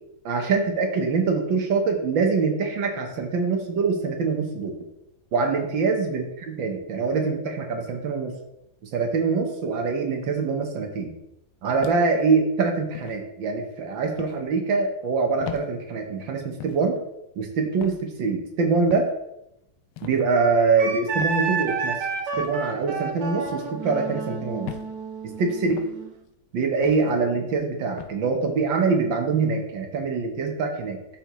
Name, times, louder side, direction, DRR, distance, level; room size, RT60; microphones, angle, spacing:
voice 1, 0.2-4.7 5.3-8.3 8.9-11.1 11.6-17.0 17.4-19.1 20.0-22.0 22.4-24.7 25.4-25.8 26.5-31.0, right 4 dB, 65° right, 3 dB, 1.6 m, -24 dB
sound 1, 11.8-12.3 12.9-13.2 14.2-14.4 15.4-15.7 16.6-16.8 17.8-18.1 18.9-19.2 20.0-20.2 21.2-21.4 22.3-22.5 23.5-23.7 24.7-24.9 25.7-25.9 26.8-27.1 28.0-28.2, left 11 dB, 85° left, 1.5 m, -39 dB
Wind instrument woodwind instrument, 20.8-26.2, right 5 dB, 85° right, 1.9 m, -30 dB
12.0 x 4.6 x 3.0 m, 0.83 s
omnidirectional pair, 2.4 m